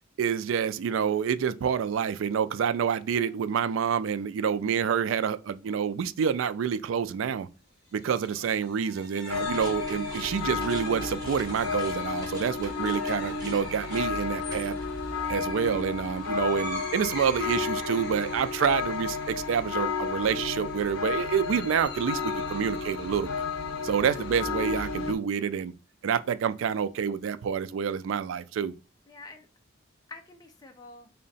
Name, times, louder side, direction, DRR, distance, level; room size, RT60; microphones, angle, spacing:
voice 1, 0.2-7.5 7.9-14.7 15.3-23.3 23.8-25.7 26.0-28.7, right 7 dB, 70° right, 0.3 m, -28 dB
sound 1, 7.9-25.2, equal, 55° left, 1.1 m, -45 dB
sound 2, 9.3-25.1, left 5 dB, 90° left, 0.5 m, -32 dB
sound 3, 9.4-16.7 17.0-18.2, right 1 dB, 20° right, 1.0 m, -46 dB
voice 2, 14.5-15.0 23.9-24.2 29.1-29.5 30.1-31.1, left 3 dB, 20° left, 0.4 m, -48 dB
3.7 x 2.2 x 4.0 m
head